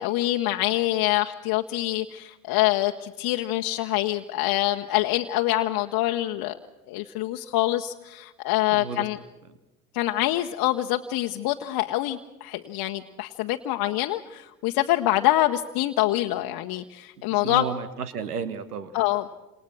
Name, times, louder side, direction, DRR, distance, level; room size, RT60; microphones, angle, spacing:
voice 1, 0.0-6.6 6.9-9.2 9.9-17.6 18.9-19.3, left 16 dB, 55° left, 4 dB, 1.1 m, -25 dB
voice 2, 8.7-9.1 17.2-18.9, right 6 dB, 85° right, 12 dB, 1.6 m, -33 dB
29.5 x 27.5 x 6.3 m, 1.0 s
hypercardioid pair, 65°, 44 cm